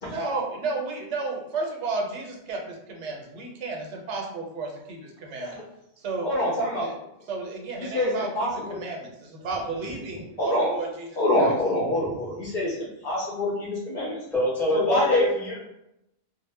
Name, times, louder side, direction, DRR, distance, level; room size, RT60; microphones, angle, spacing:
voice 1, 0.0-5.6 6.0-6.3 6.8-6.9 7.3-11.1 11.3-11.5, right 3 dB, 80° right, 1 dB, 0.9 m, -33 dB
voice 2, 6.2-6.9 7.8-8.8 10.4-10.7 11.2-14.2 14.7-15.2, left 1 dB, 55° left, -4 dB, 0.5 m, -25 dB
voice 3, 14.3-15.6, left 1 dB, ahead, -7 dB, 0.6 m, -25 dB
2.0 x 2.0 x 3.2 m, 0.82 s
omnidirectional pair, 1.2 m